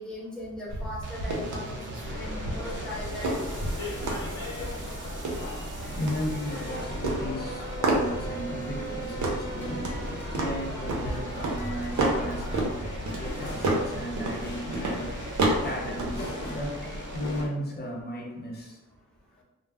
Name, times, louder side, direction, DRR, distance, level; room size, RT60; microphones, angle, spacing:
voice 1, 0.0-4.1, left 1 dB, 5° left, -5 dB, 0.9 m, -39 dB
sound 1, 0.7-16.3, right 2 dB, 75° right, 0.7 m, -32 dB
sound 2, 1.0-17.4, right 3 dB, 40° right, 0.6 m, -42 dB
sound 3, 2.0-17.5, left 1 dB, 75° left, 0.7 m, -37 dB
voice 2, 5.6-9.9 10.3-12.8 13.1-15.4 15.6-18.8 19.3-19.4, equal, 35° left, -1 dB, 0.6 m, -35 dB
2.3 x 2.0 x 3.3 m, 1.0 s
cardioid pair, 85°, 29 cm